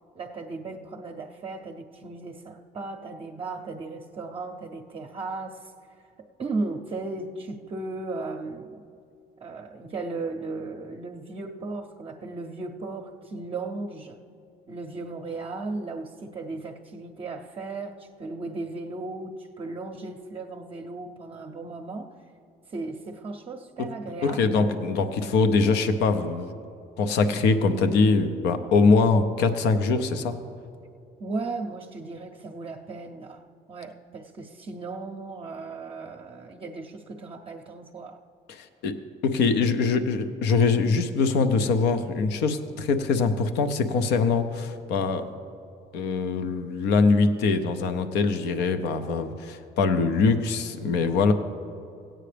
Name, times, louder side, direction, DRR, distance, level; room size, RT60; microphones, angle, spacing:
voice 1, 0.2-8.8 9.4-14.2 14.7-22.2 22.7-24.7 31.2-33.4 33.7-38.2, right 3 dB, 35° right, 1 dB, 0.6 m, -36 dB
voice 2, 24.2-26.5 27.0-30.4 38.5-38.9 39.2-45.3 45.9-51.3, left 4 dB, 85° left, 9 dB, 0.7 m, -23 dB
16.5 x 8.9 x 3.4 m, 2.6 s
cardioid pair, 110°, 17 cm